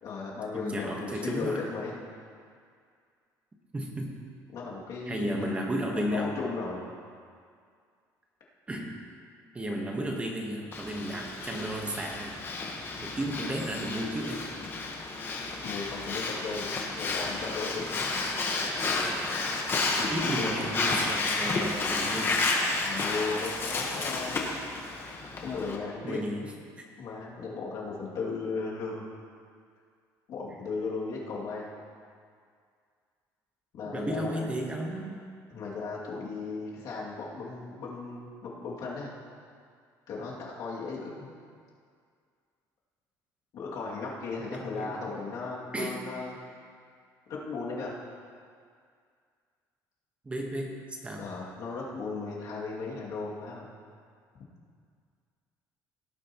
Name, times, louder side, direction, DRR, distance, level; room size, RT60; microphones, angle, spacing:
voice 1, 0.0-2.0 4.5-5.6 5.9-6.8 13.0-13.1 15.6-18.1 20.0-20.6 22.8-24.6 25.4-26.5 27.0-29.1 30.3-31.8 33.7-34.5 35.5-39.1 40.1-41.3 43.5-46.3 47.3-47.9 51.2-53.7, left 4 dB, 60° left, -5 dB, 2.5 m, -36 dB
voice 2, 0.5-1.6 3.7-4.1 5.1-6.3 8.7-9.0 9.5-12.3 13.0-14.4 19.2-19.3 20.1-22.4 26.0-26.5 33.8-35.2 44.5-45.0 45.7-46.0 50.2-51.2, right 1 dB, 15° right, 0 dB, 1.3 m, -33 dB
Breathing, 10.7-25.8, left 3 dB, 30° left, 1.3 m, -31 dB
17.0 x 9.1 x 3.0 m, 2.2 s
cardioid pair, 145°, 7 cm